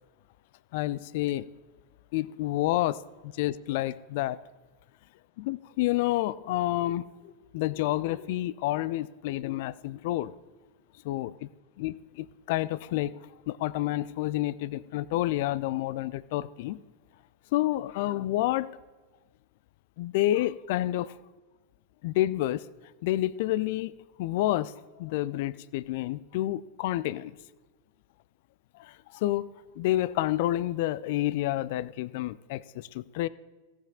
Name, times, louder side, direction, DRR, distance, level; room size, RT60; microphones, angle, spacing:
voice 1, 0.7-1.5 2.1-2.9 3.4-4.4 5.4-7.1 7.5-10.3 11.1-11.5 11.8-13.2 13.5-16.8 17.5-18.7 20.0-21.1 22.0-22.6 23.0-23.9 24.2-24.7 25.0-27.3 29.1-29.5 29.8-33.3, left 15 dB, 50° left, 19 dB, 0.3 m, -29 dB
16.5 x 7.5 x 3.7 m, 1.2 s
figure-of-eight pair, 90°, 0 cm